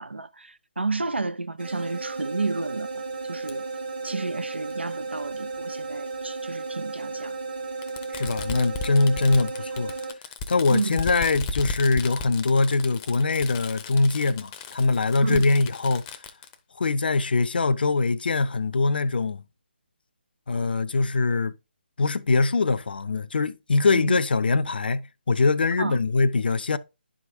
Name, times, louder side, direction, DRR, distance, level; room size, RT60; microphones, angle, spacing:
voice 1, 0.0-3.0 3.3-3.7 4.0-7.4 10.7-11.0 15.2-15.5 23.9-24.2 25.8-26.0, right 3 dB, 80° right, 0.7 m, -31 dB
sound 1, 1.6-10.1, right 3 dB, 60° right, 2.7 m, -34 dB
Fireworks, 3.5-3.6 4.7-4.8 6.1-6.2 7.8-16.5, left 4 dB, 20° left, 0.6 m, -36 dB
voice 2, 8.1-9.9 10.5-16.2 16.8-19.4 20.5-21.5 22.0-26.8, left 3 dB, 60° left, 0.5 m, -23 dB
11.0 x 4.9 x 2.5 m
figure-of-eight pair, 145°, 6 cm